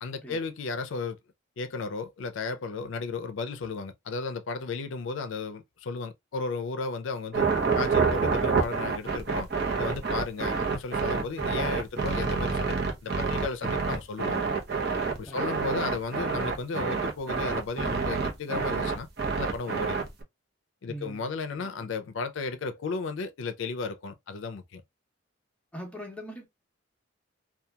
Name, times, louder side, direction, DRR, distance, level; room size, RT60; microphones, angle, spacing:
voice 1, 0.0-1.2 1.6-7.5 7.8-9.5 9.8-14.4 15.2-19.1 19.4-20.1 20.8-24.8, left 4 dB, 70° left, 0.4 m, -34 dB
sound 1, 7.3-20.2, right 5 dB, 55° right, 0.7 m, -28 dB
voice 2, 20.9-21.9 25.7-26.5, equal, 5° left, 0.7 m, -42 dB
2.8 x 2.3 x 2.2 m
head